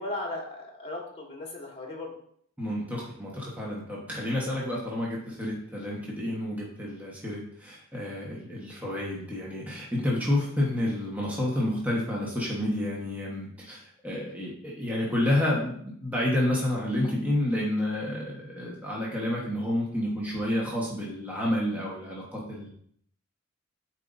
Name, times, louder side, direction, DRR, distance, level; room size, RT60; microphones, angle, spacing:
voice 1, 0.0-2.1, left 2 dB, 30° left, -1 dB, 1.6 m, -36 dB
voice 2, 2.6-22.7, left 1 dB, 10° right, -5 dB, 1.2 m, -30 dB
9.0 x 4.6 x 2.6 m, 0.64 s
head